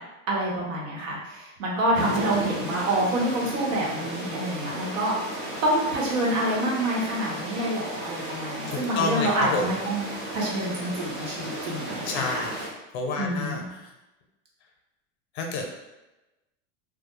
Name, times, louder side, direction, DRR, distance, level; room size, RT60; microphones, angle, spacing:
voice 1, 0.3-10.1 10.3-12.4 13.2-13.6, right 1 dB, 85° right, -4 dB, 1.0 m, -27 dB
sound 1, 1.9-12.7, right 1 dB, 20° right, 0.7 m, -34 dB
voice 2, 8.7-9.7 12.0-13.9 15.3-15.7, left 3 dB, 55° left, 2 dB, 0.6 m, -29 dB
2.2 x 2.1 x 2.9 m, 1.0 s
supercardioid pair, 140°, 38 cm